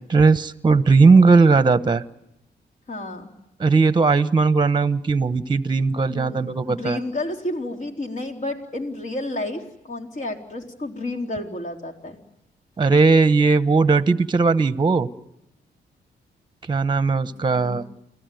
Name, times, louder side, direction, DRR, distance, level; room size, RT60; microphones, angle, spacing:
voice 1, 0.1-2.0 3.6-7.0 12.8-15.1 16.7-17.8, right 4 dB, 25° right, 12 dB, 1.0 m, -18 dB
voice 2, 2.9-3.3 6.1-12.2 17.2-17.8, left 2 dB, 45° left, 2 dB, 3.8 m, -31 dB
29.5 x 19.0 x 9.3 m, 0.83 s
cardioid pair, 105°, 18 cm